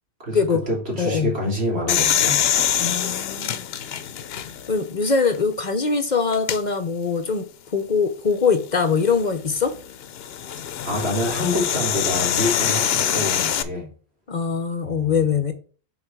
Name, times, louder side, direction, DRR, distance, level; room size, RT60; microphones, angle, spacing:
voice 1, 0.2-2.5 10.8-13.9 14.8-15.3, left 1 dB, 80° right, -2 dB, 3.2 m, -27 dB
voice 2, 1.0-1.3 2.8-3.7 4.7-9.8 14.3-15.5, left 5 dB, 45° left, 8 dB, 0.9 m, -22 dB
sound 1, 1.9-4.8 5.3-5.4 6.3-6.6 8.7-13.6, left 9 dB, 75° left, 0.8 m, -24 dB
6.3 x 4.2 x 4.6 m, 0.40 s
omnidirectional pair, 1.1 m